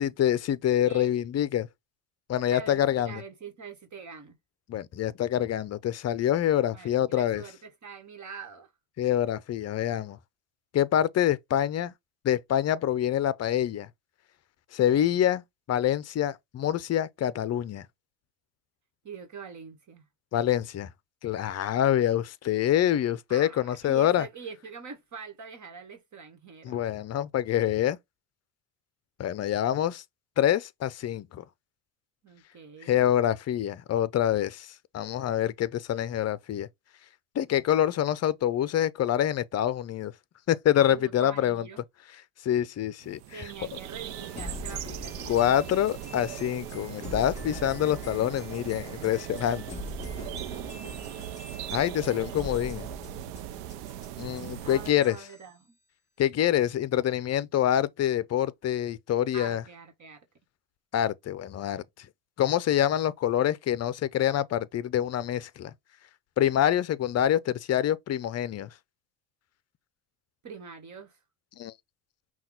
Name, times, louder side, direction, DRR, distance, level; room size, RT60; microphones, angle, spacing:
voice 1, 0.0-1.7 2.3-3.2 4.7-7.4 9.0-10.2 10.7-11.9 12.2-13.9 14.7-15.4 15.7-17.9 20.3-20.9 21.2-24.3 26.6-28.0 29.2-30.0 30.4-31.4 32.8-36.7 37.3-40.1 40.5-41.7 42.4-43.2 45.3-49.7 51.7-52.9 54.2-55.2 56.2-59.6 60.9-62.1 62.4-65.7 66.4-68.7 71.6-71.7, left 11 dB, 35° left, 0.6 m, -26 dB
voice 2, 2.5-4.4 6.7-8.7 19.0-20.1 23.3-26.8 32.2-33.0 40.8-41.8 43.3-45.4 54.6-55.8 59.3-60.2 70.4-71.2, right 5 dB, 40° right, 1.5 m, -44 dB
sound 1, 43.0-54.9, right 12 dB, 90° right, 0.7 m, -39 dB
sound 2, 44.1-55.5, left 2 dB, 15° left, 2.7 m, -43 dB
5.6 x 2.4 x 3.7 m
supercardioid pair, 85°, 45 cm